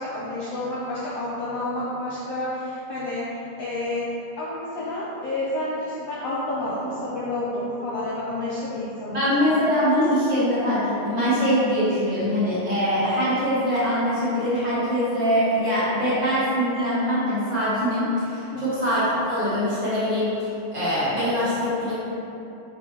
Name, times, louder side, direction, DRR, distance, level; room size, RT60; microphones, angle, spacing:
voice 1, 0.0-3.2 3.6-4.1 4.4-9.3 18.5-18.8, left 1 dB, 70° left, -8 dB, 1.6 m, -29 dB
voice 2, 9.1-21.9, equal, 45° right, -13 dB, 1.9 m, -23 dB
7.3 x 4.3 x 3.1 m, 2.9 s
omnidirectional pair, 3.6 m